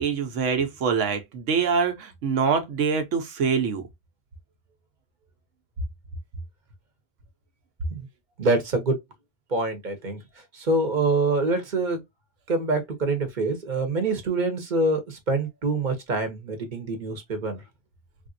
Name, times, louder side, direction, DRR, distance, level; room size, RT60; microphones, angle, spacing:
voice 1, 0.0-3.9, right 6 dB, 90° right, 1.1 m, -24 dB
voice 2, 8.4-9.0 9.5-10.2 10.5-12.0 12.5-17.6, right 2 dB, 45° right, 0.9 m, -25 dB
3.4 x 2.5 x 2.5 m
omnidirectional pair, 1.2 m